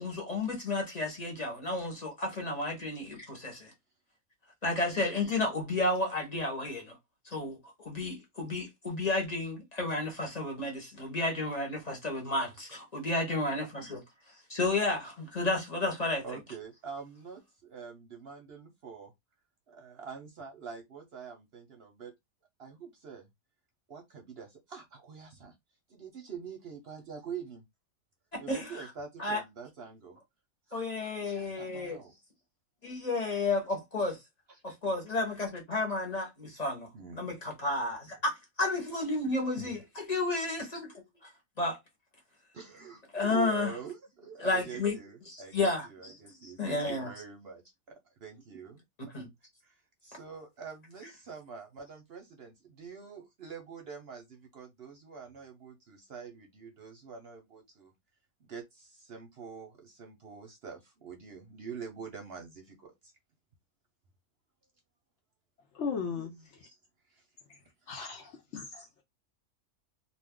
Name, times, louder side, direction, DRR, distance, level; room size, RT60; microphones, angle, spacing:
voice 1, 0.0-3.7 4.6-7.0 7.3-14.0 14.5-16.2 28.3-28.9 29.2-29.4 30.7-32.0 32.8-34.2 34.6-36.9 37.1-41.0 41.6-41.8 43.1-43.7 44.4-45.0 45.2-46.1 46.4-47.1 49.1-49.3, left 2 dB, 30° left, 0.9 m, -32 dB
voice 2, 16.2-19.1 19.7-22.1 22.6-23.3 23.9-25.5 25.9-27.6 28.4-30.2 30.7-32.1 34.5-34.8 36.9-37.4 39.6-39.8 42.5-48.8 49.6-57.9 58.4-63.1 66.2-66.8 67.1-67.2 67.8-68.2, right 6 dB, 55° right, 0.8 m, -45 dB
voice 3, 65.7-66.7 67.5-67.6 67.9-69.0, left 5 dB, 65° left, 0.8 m, -38 dB
2.5 x 2.4 x 3.6 m
omnidirectional pair, 1.5 m